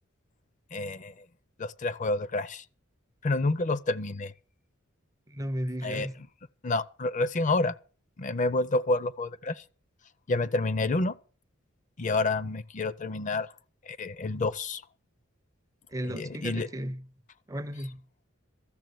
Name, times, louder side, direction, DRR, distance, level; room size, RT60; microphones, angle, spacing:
voice 1, 0.7-1.2 1.6-2.6 3.2-4.3 5.8-6.1 6.6-7.7 8.2-9.6 10.3-11.1 12.0-13.5 13.9-14.8 16.0-16.7, left 2 dB, 40° left, 0.6 m, -29 dB
voice 2, 5.3-6.2 15.9-17.0 17.5-18.0, equal, 15° right, 0.5 m, -34 dB
13.5 x 7.2 x 7.8 m
head